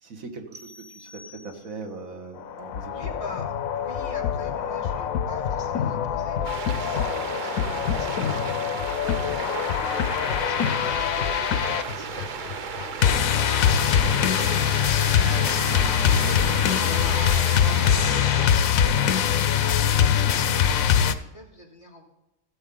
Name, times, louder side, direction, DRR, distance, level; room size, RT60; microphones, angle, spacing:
voice 1, 0.0-3.1, right 4 dB, 80° right, 3 dB, 1.9 m, -40 dB
sound 1, 0.5-2.0, left 2 dB, 20° right, 1.2 m, -48 dB
sound 2, 2.4-21.1, left 8 dB, 80° left, 1.1 m, -23 dB
voice 2, 2.8-3.5 3.7-19.3 19.6-22.0, left 2 dB, 55° left, 0 dB, 2.9 m, -44 dB
sound 3, 6.4-18.5, right 6 dB, 50° right, 0.6 m, -35 dB
16.0 x 8.2 x 3.9 m, 0.94 s
omnidirectional pair, 1.4 m